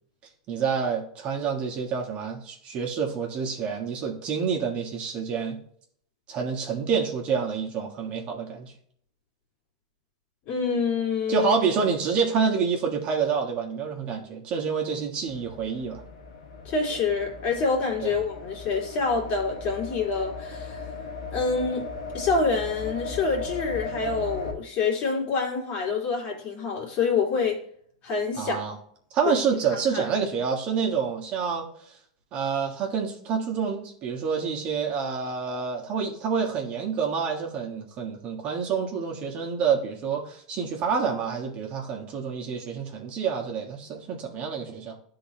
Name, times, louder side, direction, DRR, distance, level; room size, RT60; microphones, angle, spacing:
voice 1, 0.5-5.6 6.3-8.7 11.3-16.0 18.0-18.1 28.3-28.8 29.1-31.7 32.3-45.0, right 6 dB, 35° right, -1 dB, 1.5 m, -28 dB
voice 2, 10.5-11.5 16.6-20.8 21.3-21.9 22.1-27.6 28.0-28.7 29.2-29.3 29.9-30.1, left 4 dB, 40° left, -1 dB, 2.4 m, -26 dB
sound 1, 15.3-24.5, left 3 dB, 80° left, 1.5 m, -37 dB
11.5 x 3.9 x 2.9 m, 0.62 s
supercardioid pair, 130°, 3 cm